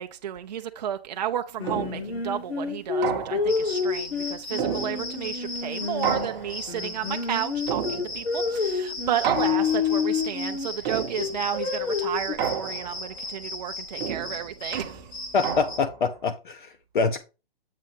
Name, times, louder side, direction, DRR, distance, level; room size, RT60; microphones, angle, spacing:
voice 1, 0.0-15.1, right 10 dB, 45° right, 0.5 m, -32 dB
Singing, 1.6-6.3 6.7-10.7 11.2-12.3, left 6 dB, 80° left, 2.1 m, -28 dB
sound 1, 1.7-2.2 3.0-3.7 4.6-5.3 6.0-6.8 7.7-8.4 9.2-10.0 10.9-11.5 12.4-13.1 14.0-16.0, right 7 dB, 20° right, 0.8 m, -31 dB
sound 2, 3.5-15.8, left 2 dB, 10° left, 0.7 m, -37 dB
voice 2, 15.3-17.2, left 4 dB, 55° left, 0.7 m, -25 dB
7.5 x 3.0 x 5.4 m
hypercardioid pair, 160°, 30 cm